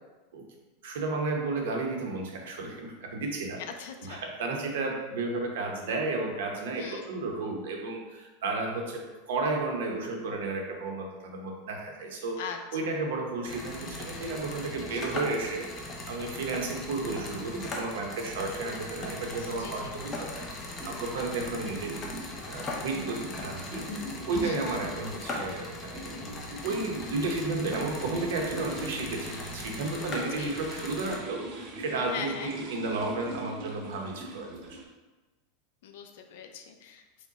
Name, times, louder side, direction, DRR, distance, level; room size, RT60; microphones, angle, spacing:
voice 1, 0.8-3.6 4.0-12.4 12.7-22.1 22.5-23.9 24.3-26.2 26.6-34.8, right 3 dB, 75° right, 1 dB, 0.9 m, -33 dB
voice 2, 3.8-4.2 6.8-7.0 12.4-13.0 14.9-15.3 19.3-20.0 24.4-24.8 30.4-30.6 32.1-32.5 35.8-37.0, left 7 dB, 65° left, 6 dB, 0.5 m, -41 dB
sound 1, 13.4-31.2, left 2 dB, 20° left, 0.6 m, -39 dB
sound 2, 17.8-34.8, right 2 dB, 45° right, 0.7 m, -50 dB
sound 3, 20.8-20.9 21.4-22.3 22.9-25.1 25.9-27.0 28.0-29.7 30.8-34.8, equal, 5° right, 0.8 m, -43 dB
5.1 x 2.2 x 4.0 m, 1.2 s
supercardioid pair, 165°, 0 cm